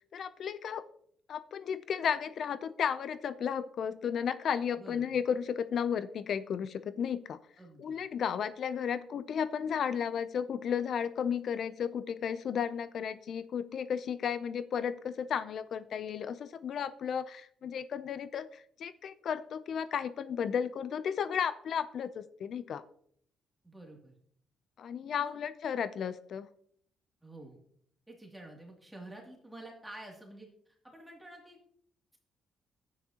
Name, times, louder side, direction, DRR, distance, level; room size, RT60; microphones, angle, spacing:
voice 1, 0.1-0.8 1.3-7.4 7.8-22.8 24.8-26.5, left 7 dB, 60° left, 14 dB, 0.4 m, -34 dB
voice 2, 4.8-5.2 7.6-8.0 23.6-24.1 25.2-25.3 27.2-27.6 28.1-31.6, right 1 dB, 10° right, -1 dB, 2.5 m, -49 dB
11.0 x 9.3 x 2.8 m, 0.63 s
cardioid pair, 90°, 0 cm